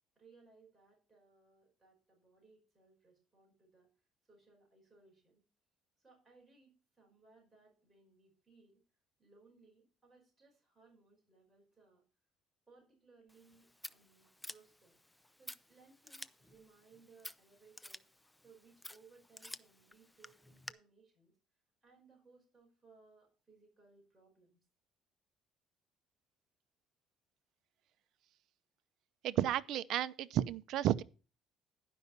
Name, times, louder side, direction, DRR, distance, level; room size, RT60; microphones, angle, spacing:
voice 1, 0.2-3.9 4.3-5.4 6.0-8.8 9.2-12.0 12.7-15.0 15.4-18.0 18.4-21.3 21.8-24.6, right 4 dB, 15° right, 5.3 m, -65 dB
Scissors, 13.3-20.7, left 1 dB, 5° left, 0.4 m, -53 dB
voice 2, 29.2-31.0, right 12 dB, 65° right, 0.6 m, -32 dB
11.0 x 5.5 x 6.7 m
cardioid pair, 130°, 0 cm